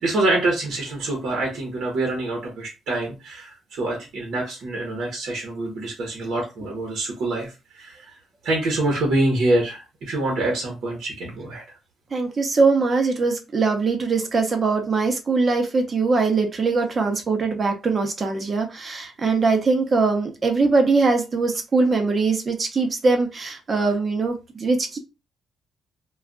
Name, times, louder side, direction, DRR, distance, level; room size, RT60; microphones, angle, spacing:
voice 1, 0.0-8.0 8.4-11.6, right 2 dB, 70° right, 0 dB, 1.0 m, -25 dB
voice 2, 12.1-25.0, right 4 dB, 40° right, 4 dB, 0.8 m, -21 dB
2.4 x 2.2 x 3.7 m, 0.28 s
cardioid pair, 90°, 0 cm